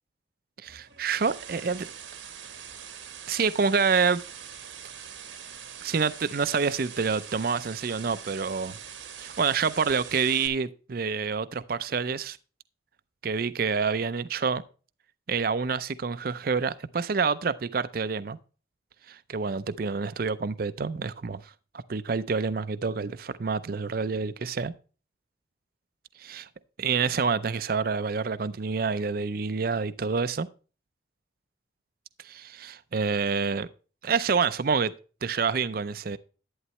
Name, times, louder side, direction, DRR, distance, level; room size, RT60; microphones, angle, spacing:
voice 1, 0.6-1.9 3.3-4.2 5.8-8.8 9.2-12.4 13.2-14.6 15.3-18.4 19.1-21.4 21.9-24.7 26.2-26.5 26.8-30.5 32.2-33.7 34.0-34.9 35.2-36.2, right 5 dB, 50° right, 0.5 m, -27 dB
sound 1, 0.7-10.5, right 8 dB, 85° right, 1.5 m, -43 dB
11.0 x 9.5 x 3.1 m
head